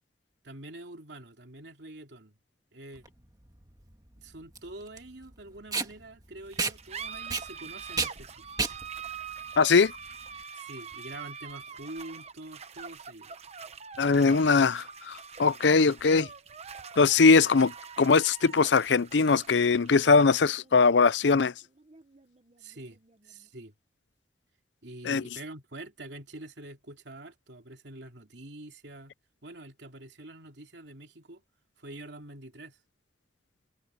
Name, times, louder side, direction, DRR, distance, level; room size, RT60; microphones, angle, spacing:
voice 1, 0.4-2.3 2.7-3.0 4.2-8.5 10.5-13.3 22.6-23.7 24.8-29.1 29.4-31.4 31.8-32.8, right 2 dB, 75° right, 2.9 m, -45 dB
Packing tape duct tape, 3.0-10.4, right 4 dB, 20° right, 1.7 m, -34 dB
sound 1, 6.5-23.5, right 6 dB, 35° right, 1.0 m, -45 dB
voice 2, 9.6-9.9 14.0-16.3 17.0-17.7 18.0-21.5 25.0-25.2, left 4 dB, 80° left, 0.6 m, -21 dB
head